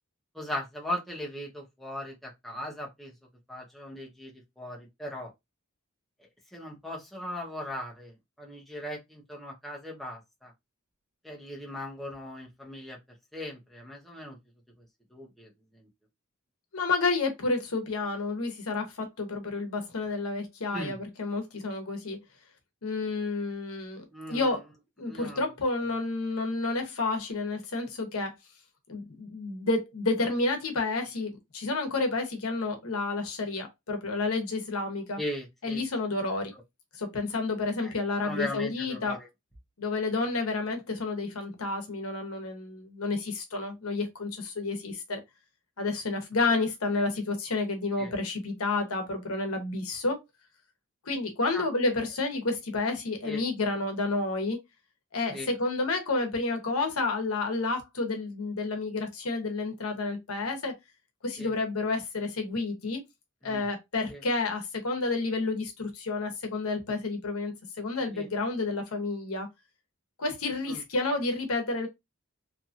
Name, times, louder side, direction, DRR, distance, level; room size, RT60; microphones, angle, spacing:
voice 1, 0.3-3.1 3.5-5.3 6.5-8.1 8.4-10.5 11.2-13.0 13.3-14.4 15.1-15.5 20.7-21.0 24.1-24.5 25.0-25.5 35.2-35.8 36.5-36.6 37.8-37.9 38.2-39.3 48.0-48.1 51.5-51.6 53.3-53.4 55.3-55.5 61.4-61.5 63.4-63.6 64.1-64.2 68.1-68.3 70.7-70.8, left 1 dB, ahead, 0.8 m, -38 dB
voice 2, 16.7-22.2 22.8-24.7 25.0-28.3 28.9-35.2 35.6-36.5 36.9-39.2 39.8-45.2 45.8-50.2 51.1-54.6 55.1-60.7 61.2-63.0 63.4-69.5 70.2-71.9, left 3 dB, 85° left, 0.9 m, -30 dB
2.8 x 2.5 x 2.5 m
head